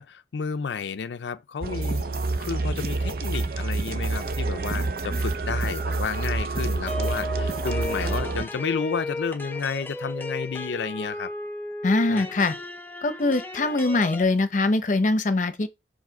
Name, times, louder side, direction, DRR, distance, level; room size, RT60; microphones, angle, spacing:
voice 1, 0.0-2.0 2.4-11.3 12.1-12.3, left 5 dB, 90° left, 0.4 m, -31 dB
sound 1, 1.6-8.4, right 3 dB, 55° right, 0.6 m, -27 dB
sound 2, 6.9-14.2, left 1 dB, 10° left, 0.6 m, -34 dB
voice 2, 11.8-12.6 13.0-15.7, left 2 dB, 45° left, 0.7 m, -22 dB
4.8 x 4.2 x 5.8 m
head